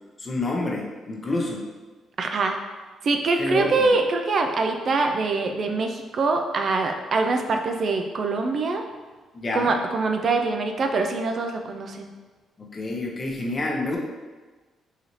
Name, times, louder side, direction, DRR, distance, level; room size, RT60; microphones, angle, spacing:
voice 1, 0.2-1.7 3.4-3.7 9.3-9.7 12.6-14.0, left 2 dB, 35° left, -1 dB, 0.7 m, -28 dB
voice 2, 2.2-2.6 3.0-8.8 9.5-12.1, right 3 dB, 50° right, 5 dB, 0.3 m, -24 dB
3.9 x 2.7 x 3.0 m, 1.3 s
cardioid pair, 90°, 0 cm